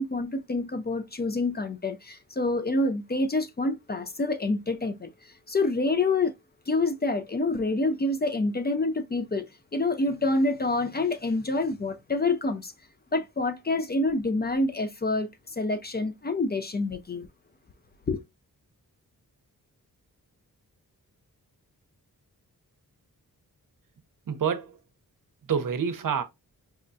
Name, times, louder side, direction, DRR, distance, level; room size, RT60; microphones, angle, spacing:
voice 1, 0.0-6.3 6.7-9.4 9.7-12.7 13.1-17.3 18.1-18.2, left 2 dB, 25° left, 0.4 m, -27 dB
voice 2, 24.3-24.8 25.5-26.2, right 7 dB, 60° right, 0.7 m, -27 dB
4.8 x 2.2 x 2.5 m
cardioid pair, 55°, 37 cm